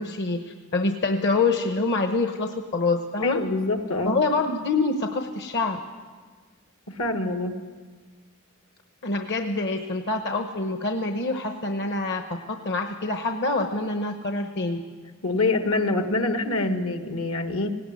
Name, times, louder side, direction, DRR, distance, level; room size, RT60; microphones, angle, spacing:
voice 1, 0.0-3.4 4.0-5.8 9.0-12.2 12.5-14.8, left 3 dB, 55° left, 6 dB, 1.1 m, -26 dB
voice 2, 3.2-4.1 6.9-7.6 15.2-17.7, left 2 dB, 75° left, 7 dB, 1.7 m, -25 dB
19.0 x 17.0 x 9.7 m, 1.5 s
head